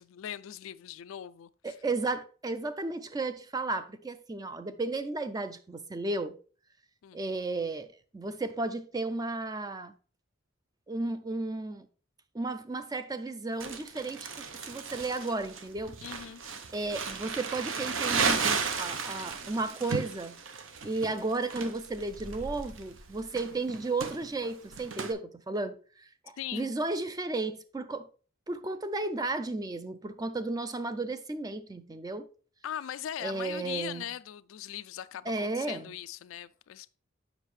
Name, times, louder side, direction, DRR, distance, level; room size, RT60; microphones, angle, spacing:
voice 1, 0.0-1.8 7.0-7.2 16.0-16.4 26.4-26.7 32.6-37.0, left 10 dB, 70° left, 0.3 m, -40 dB
voice 2, 1.6-6.4 7.1-7.9 8.1-9.9 10.9-11.9 12.3-16.0 16.7-20.4 20.8-28.1 28.5-32.3 33.2-34.1 35.3-35.9, right 3 dB, 20° right, 0.4 m, -34 dB
Crumpling crinkling, 13.6-25.1, right 5 dB, 65° right, 0.8 m, -34 dB
7.3 x 5.6 x 3.2 m
head